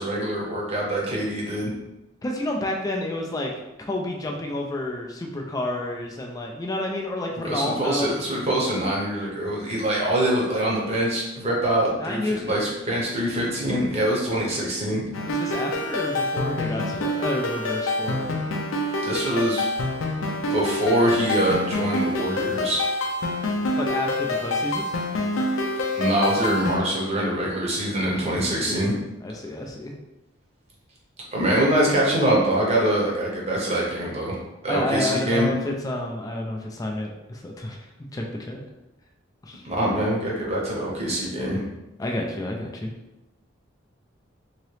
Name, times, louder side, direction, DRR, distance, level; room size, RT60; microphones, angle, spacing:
voice 1, 0.0-1.7 7.4-15.0 19.0-19.7 20.5-22.8 25.9-29.0 31.3-35.5 39.6-41.7, right 1 dB, 30° right, -4 dB, 0.8 m, -24 dB
voice 2, 2.2-3.5 3.8-8.1 12.0-12.7 15.3-18.4 23.8-24.9 28.3-28.9 29.2-29.9 34.7-37.8 38.1-38.6 39.4-39.6 42.0-42.9, left 1 dB, 20° left, 1 dB, 0.3 m, -30 dB
sound 1, 15.1-26.8, left 1 dB, 90° left, 0.5 m, -27 dB
2.8 x 2.8 x 3.2 m, 0.98 s
head